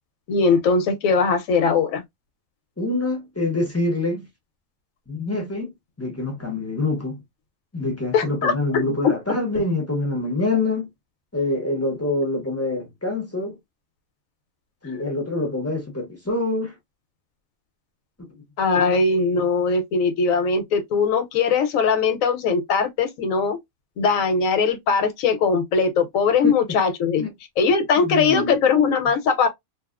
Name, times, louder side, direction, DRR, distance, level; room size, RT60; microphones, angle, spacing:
voice 1, 0.3-2.0 8.1-9.1 14.9-15.0 18.6-23.6 24.0-27.2 27.6-29.5, left 5 dB, 80° left, 1.0 m, -20 dB
voice 2, 2.8-4.3 5.1-5.7 6.0-7.2 7.7-10.9 11.3-13.6 14.8-16.7 26.4-26.5 27.2-27.3 28.0-28.5, left 2 dB, 20° left, 0.4 m, -25 dB
2.7 x 2.3 x 2.3 m
omnidirectional pair, 1.4 m